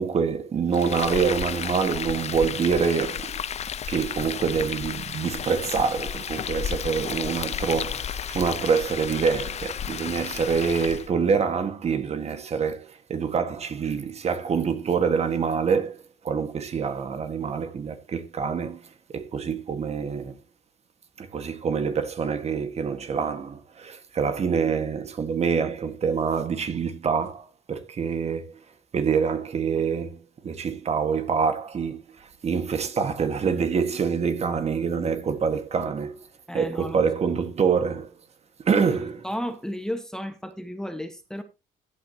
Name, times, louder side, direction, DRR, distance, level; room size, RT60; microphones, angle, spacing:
voice 1, 0.0-3.4 3.9-16.0 16.2-20.3 21.2-28.6 28.9-36.3 36.5-38.1 38.6-39.2, right 6 dB, 40° right, 1.7 m, -26 dB
Frying (food), 0.7-11.1, left 8 dB, 40° left, 0.7 m, -32 dB
voice 2, 36.5-37.0 38.8-39.0 39.2-41.4, equal, 5° left, 1.3 m, -33 dB
15.5 x 8.6 x 2.9 m
cardioid pair, 110°, 17 cm